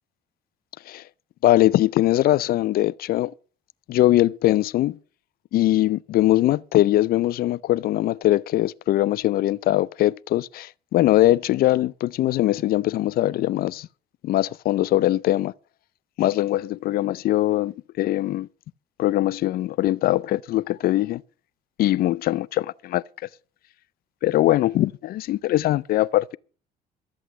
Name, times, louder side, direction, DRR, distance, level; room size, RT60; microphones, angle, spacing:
voice 1, 1.4-3.3 3.9-5.0 5.5-13.9 14.2-15.5 16.2-18.5 19.0-21.2 21.8-23.0 24.2-26.4, left 15 dB, 60° left, 0.5 m, -21 dB
13.0 x 8.2 x 7.6 m
cardioid pair, 110°, 17 cm